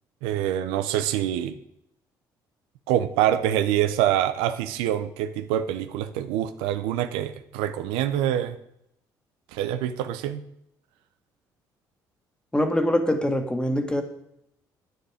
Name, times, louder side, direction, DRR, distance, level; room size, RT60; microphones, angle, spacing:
voice 1, 0.2-1.6 2.9-8.6 9.5-10.4, right 11 dB, 85° right, 10 dB, 0.6 m, -25 dB
voice 2, 12.5-14.0, left 1 dB, 10° left, 6 dB, 1.8 m, -23 dB
9.7 x 9.2 x 5.0 m, 0.76 s
supercardioid pair, 70°, 9 cm